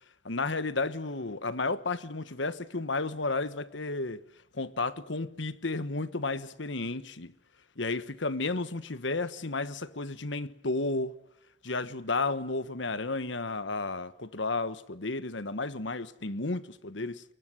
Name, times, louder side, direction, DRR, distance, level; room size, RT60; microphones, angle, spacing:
voice 1, 0.2-4.2 4.5-7.3 7.8-11.1 11.6-17.2, left 3 dB, 70° left, 1.4 m, -32 dB
29.5 x 23.0 x 7.8 m
head